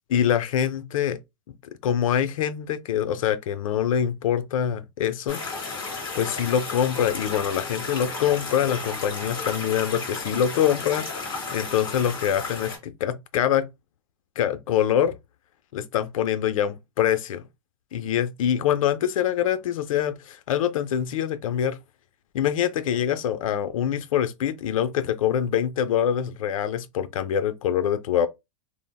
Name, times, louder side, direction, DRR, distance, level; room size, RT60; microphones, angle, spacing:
voice 1, 0.1-1.2 1.8-5.4 6.1-13.7 14.4-15.2 15.7-17.4 17.9-21.8 22.3-28.3, left 9 dB, 75° left, 0.5 m, -24 dB
sound 1, 5.3-12.8, left 4 dB, 25° left, 1.8 m, -33 dB
3.3 x 2.0 x 2.3 m
hypercardioid pair, 135°, 17 cm